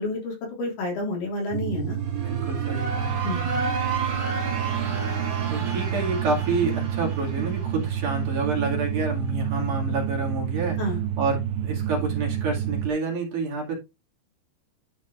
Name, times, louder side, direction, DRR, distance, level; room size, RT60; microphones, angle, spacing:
voice 1, 0.0-2.0 3.2-3.5 10.8-11.0, left 2 dB, 75° left, 5.2 m, -29 dB
sound 1, 1.5-12.9, right 10 dB, 85° right, 2.1 m, -29 dB
sound 2, 1.9-8.7, right 4 dB, 35° right, 2.2 m, -32 dB
voice 2, 2.2-3.1 3.4-3.6 5.5-10.8 11.2-13.7, right 3 dB, 55° right, 3.4 m, -28 dB
10.5 x 4.0 x 3.7 m
omnidirectional pair, 4.7 m